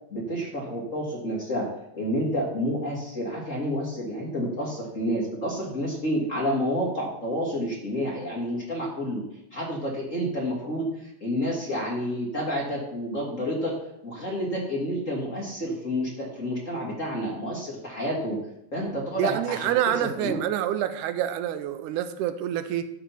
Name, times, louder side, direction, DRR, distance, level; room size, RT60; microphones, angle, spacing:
voice 1, 0.1-1.7 1.9-9.2 9.5-13.7 14.0-18.4 18.7-20.4, equal, 30° left, 1.6 m, -29 dB
voice 2, 19.2-22.9, right 11 dB, 85° right, 2.1 m, -27 dB
11.5 x 4.2 x 6.9 m
omnidirectional pair, 3.6 m